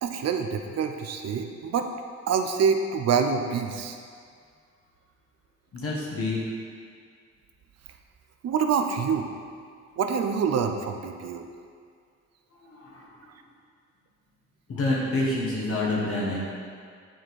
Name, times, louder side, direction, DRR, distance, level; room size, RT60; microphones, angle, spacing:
voice 1, 0.0-1.9 2.3-4.0 8.4-9.3 10.0-11.4, right 6 dB, 60° right, 6 dB, 0.6 m, -26 dB
voice 2, 5.7-6.4 12.5-13.1 14.7-16.5, left 2 dB, 50° left, -4 dB, 1.4 m, -28 dB
10.0 x 4.4 x 4.7 m, 2.1 s
wide cardioid pair, 180°, 29 cm